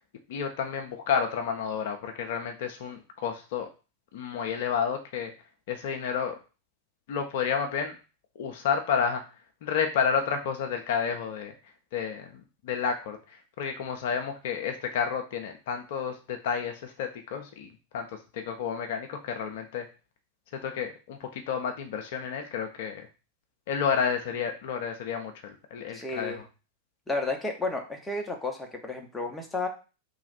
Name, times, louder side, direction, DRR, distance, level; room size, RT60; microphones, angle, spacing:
voice 1, 0.3-3.7 4.1-5.3 5.7-6.4 7.1-8.0 8.4-9.2 9.6-11.5 11.9-17.7 17.9-19.9 20.6-23.1 23.7-26.4, left 7 dB, 55° left, 5 dB, 0.5 m, -30 dB
voice 2, 25.9-26.4 27.1-29.7, left 3 dB, 10° left, 3 dB, 0.7 m, -32 dB
2.9 x 2.4 x 4.0 m, 0.33 s
figure-of-eight pair, 90°, 0 cm